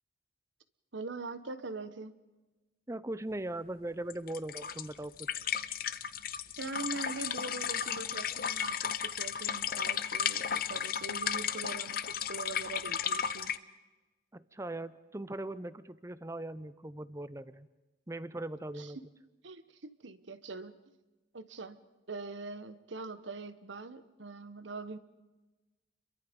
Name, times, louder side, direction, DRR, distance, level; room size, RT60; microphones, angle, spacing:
voice 1, 0.9-2.1 6.6-13.5 18.8-18.9 19.4-20.8 21.3-25.0, right 3 dB, 75° right, 13 dB, 1.2 m, -43 dB
voice 2, 2.9-5.1 14.3-17.7 18.1-19.0, right 1 dB, 15° right, 15 dB, 0.7 m, -39 dB
sound 1, 4.1-13.6, left 8 dB, 50° left, 0.8 m, -34 dB
30.0 x 23.0 x 5.3 m, 1.1 s
head